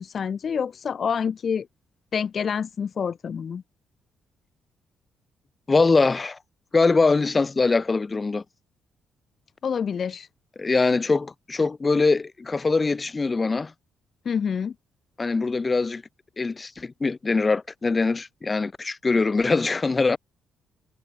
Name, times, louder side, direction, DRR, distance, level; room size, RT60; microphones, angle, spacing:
voice 1, 0.0-1.7 2.1-3.6 9.6-10.3 14.2-14.7, left 7 dB, 50° left, 4.3 m, -27 dB
voice 2, 5.7-6.4 6.7-8.4 10.6-13.7 15.2-16.0 16.4-20.2, left 3 dB, 25° left, 5.0 m, -22 dB
cardioid pair, 90°, 0 cm